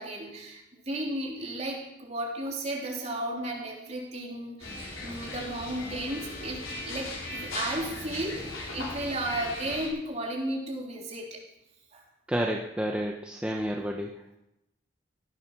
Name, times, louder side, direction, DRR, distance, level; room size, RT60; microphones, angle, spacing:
voice 1, 0.0-4.7 5.0-11.4 11.9-12.0, right 1 dB, 35° right, -2 dB, 3.5 m, -34 dB
sound 1, 4.6-9.9, left 2 dB, 85° left, 4.4 m, -38 dB
voice 2, 12.3-14.1, equal, 5° right, 0 dB, 0.9 m, -30 dB
17.0 x 10.5 x 6.0 m, 0.89 s
head